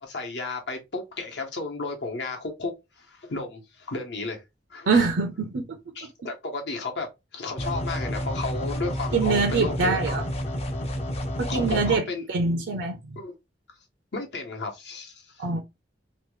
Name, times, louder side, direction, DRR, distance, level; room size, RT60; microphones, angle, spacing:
voice 1, 0.0-4.4 4.7-5.1 5.9-7.1 7.3-10.2 11.5-12.3 13.2-13.3 14.1-15.6, left 3 dB, 70° left, 1.0 m, -33 dB
voice 2, 4.9-5.6 9.1-10.2 11.4-12.0 12.3-13.2 15.4-15.6, right 4 dB, 85° right, 0.6 m, -24 dB
sound 1, 7.6-12.0, equal, 35° left, 0.5 m, -30 dB
2.9 x 2.2 x 3.1 m
head